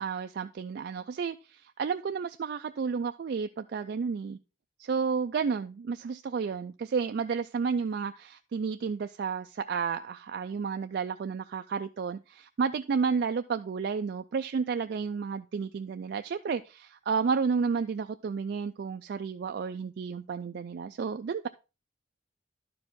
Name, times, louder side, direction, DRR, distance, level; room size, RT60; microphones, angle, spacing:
voice 1, 0.0-4.4 4.8-21.5, right 5 dB, 60° right, 0.3 m, -31 dB
11.5 x 4.8 x 3.5 m
head